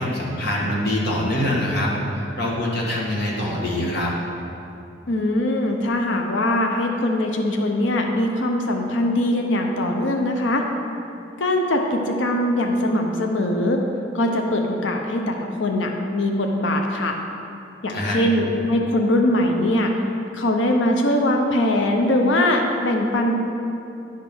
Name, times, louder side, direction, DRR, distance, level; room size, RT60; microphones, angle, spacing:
voice 1, 0.0-4.1 17.9-18.2, left 1 dB, 60° left, -4 dB, 1.7 m, -24 dB
voice 2, 5.1-10.7 11.4-13.8 14.1-17.2 17.8-19.9 20.3-23.4, left 1 dB, 85° left, 3 dB, 0.7 m, -21 dB
10.5 x 3.7 x 6.0 m, 2.7 s
head